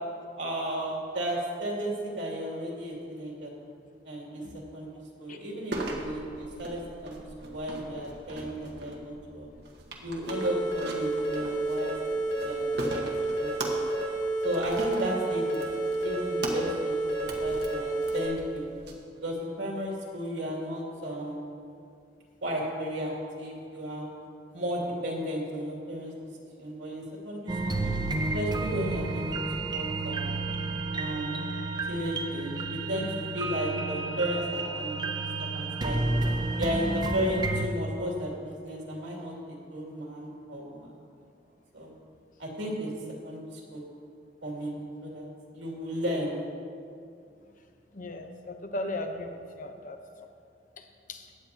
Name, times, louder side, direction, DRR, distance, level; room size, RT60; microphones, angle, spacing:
voice 1, 0.3-3.5 4.0-4.5 4.7-4.9 5.2-9.5 10.0-11.9 12.4-13.0 13.4-13.5 14.4-15.7 16.0-18.6 19.1-21.4 22.4-24.1 24.5-26.1 26.6-27.9 28.3-30.4 31.0-31.5 31.9-33.1 33.3-35.0 35.4-36.0 36.6-40.9 41.7-41.9 42.4-42.9 43.2-43.4 43.7-43.8 44.4-44.8 45.0-45.3 45.5-46.3, equal, 85° right, -3 dB, 2.6 m, -34 dB
sound 1, 5.7-18.9, right 1 dB, 65° right, 1.4 m, -40 dB
sound 2, 10.3-18.3, right 2 dB, 80° left, 2.6 m, -30 dB
sound 3, 27.5-37.7, right 2 dB, 25° right, 0.6 m, -31 dB
voice 2, 47.9-50.0 50.8-51.2, left 1 dB, 45° left, 5 dB, 0.9 m, -37 dB
16.0 x 9.9 x 2.9 m, 2.4 s
head